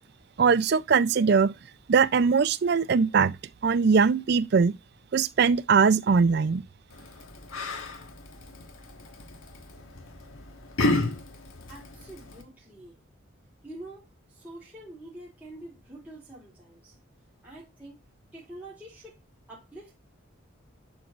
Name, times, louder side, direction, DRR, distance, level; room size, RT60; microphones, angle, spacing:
voice 1, 0.4-1.5 1.9-3.4 3.6-4.7 5.1-6.6, right 5 dB, 50° right, 0.4 m, -21 dB
Yell, 6.9-12.4, left 2 dB, 75° left, 1.4 m, -33 dB
voice 2, 11.7-13.0 13.6-17.0 17.4-18.0 18.3-19.2 19.5-20.1, right 1 dB, 10° right, 3.4 m, -46 dB
11.0 x 4.6 x 2.4 m
head